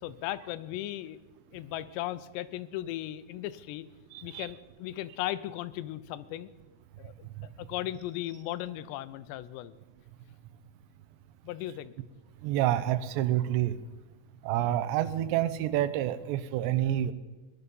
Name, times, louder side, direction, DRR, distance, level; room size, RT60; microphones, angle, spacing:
voice 1, 0.0-1.2 1.5-3.8 4.2-6.5 7.0-7.3 7.6-9.7 11.4-11.9, left 14 dB, 85° left, 15 dB, 2.8 m, -37 dB
voice 2, 12.4-13.7 14.5-17.1, right 12 dB, 90° right, 13 dB, 3.0 m, -28 dB
20.0 x 11.0 x 5.3 m, 1.2 s
omnidirectional pair, 4.9 m